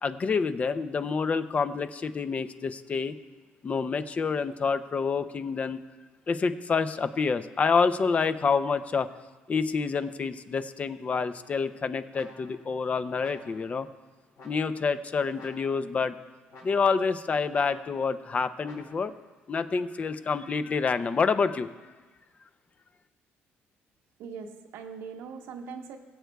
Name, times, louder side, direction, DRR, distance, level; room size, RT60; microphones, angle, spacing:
voice 1, 0.0-3.2 3.6-5.8 6.3-9.1 9.5-13.9 14.4-16.1 16.6-19.1 19.5-21.9, left 5 dB, 35° left, 11 dB, 0.5 m, -28 dB
sound 1, 11.1-11.6 12.1-12.8 13.2-13.8 14.4-14.9 15.3-16.0 16.5-17.1 17.5-18.1 18.6-19.2, left 2 dB, 85° left, 3.7 m, -52 dB
voice 2, 24.2-26.0, right 5 dB, 85° right, 4 dB, 1.0 m, -41 dB
22.0 x 7.9 x 2.3 m, 1.3 s
cardioid pair, 110°, 4 cm